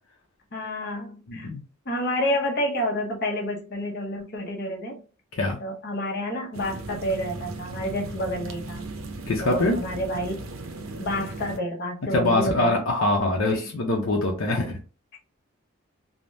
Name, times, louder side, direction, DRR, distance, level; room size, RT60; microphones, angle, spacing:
voice 1, 0.5-1.5 1.9-5.0 5.6-8.8 9.4-10.5 11.0-12.8 13.5-13.7 15.1-15.2, equal, 55° left, 0.8 m, -29 dB
voice 2, 1.3-1.6 5.3-5.6 9.3-9.8 12.1-14.8, left 2 dB, 85° left, 0.6 m, -23 dB
sound 1, 6.5-11.6, right 2 dB, 90° right, 0.6 m, -37 dB
3.3 x 2.1 x 2.6 m
head